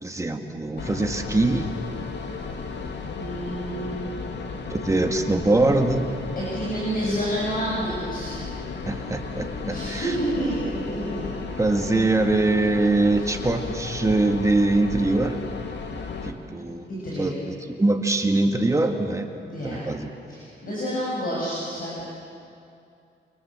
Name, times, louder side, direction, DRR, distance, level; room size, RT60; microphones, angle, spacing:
voice 1, 0.0-1.7 4.7-6.1 8.8-10.1 11.6-15.5 16.2-16.9 17.2-19.3 19.6-20.1, right 2 dB, 15° right, 4 dB, 1.9 m, -23 dB
sound 1, 0.8-16.3, left 4 dB, 65° left, 2.2 m, -34 dB
voice 2, 3.2-4.1 6.4-8.4 9.6-11.3 13.2-13.4 16.5-16.6 16.9-17.4 19.5-19.9 20.3-22.0, right 1 dB, 45° left, -6 dB, 7.3 m, -29 dB
28.5 x 25.5 x 7.4 m, 2.6 s
wide cardioid pair, 140°, 20 cm